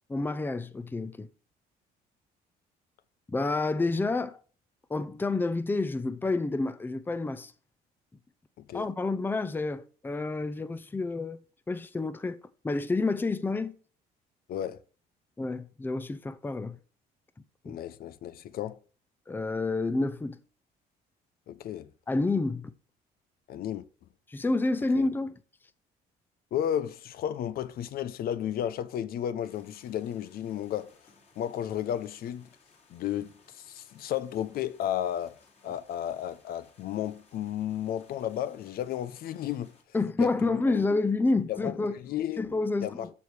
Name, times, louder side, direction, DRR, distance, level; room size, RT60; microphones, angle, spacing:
voice 1, 0.1-1.3 3.3-4.4 4.9-7.5 8.7-11.4 11.7-12.4 12.6-13.7 15.4-16.8 17.6-17.8 19.3-20.4 22.1-22.7 24.3-25.4 39.9-42.0 42.4-43.1, left 3 dB, 10° left, 0.6 m, -29 dB
voice 2, 14.5-14.8 17.6-18.8 21.5-21.9 23.5-23.8 25.0-25.1 26.5-30.9 31.4-32.5 32.9-35.4 35.6-39.7 40.2-40.8 41.5-42.4 42.8-43.1, left 10 dB, 60° left, 0.7 m, -33 dB
sound 1, 29.4-39.8, left 4 dB, 40° left, 2.9 m, -62 dB
14.0 x 4.7 x 3.3 m
cardioid pair, 110°, 17 cm